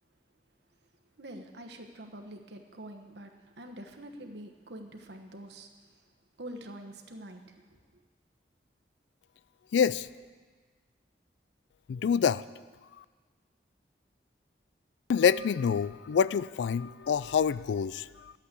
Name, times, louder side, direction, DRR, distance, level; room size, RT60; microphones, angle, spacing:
voice 1, 1.1-6.0 6.4-7.8, right 1 dB, 70° right, 4 dB, 1.2 m, -46 dB
voice 2, 9.7-10.1 11.9-12.4 15.1-18.3, left 7 dB, 75° left, 18 dB, 0.3 m, -26 dB
11.0 x 8.6 x 8.1 m, 1.5 s
head